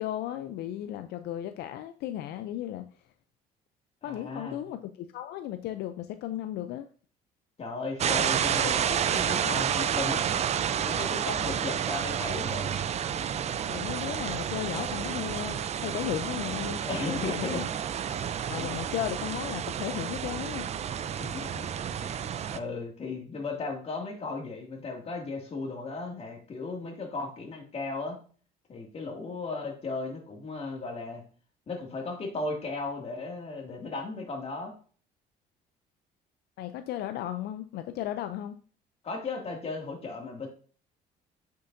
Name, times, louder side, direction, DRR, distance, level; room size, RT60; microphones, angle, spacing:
voice 1, 0.0-2.9 4.0-6.9 13.7-16.8 17.1-17.7 18.5-20.7 36.6-38.6, left 12 dB, 75° left, 9 dB, 0.5 m, -35 dB
voice 2, 4.0-4.6 7.6-10.4 10.8-12.8 16.9-17.6 18.6-18.9 21.2-21.6 22.0-28.2 28.7-31.2 31.7-34.7 39.0-40.5, left 3 dB, 35° left, 2 dB, 2.3 m, -36 dB
sound 1, 8.0-22.6, right 8 dB, 40° right, 0.5 m, -30 dB
8.1 x 6.6 x 2.6 m, 0.41 s
cardioid pair, 110°, 17 cm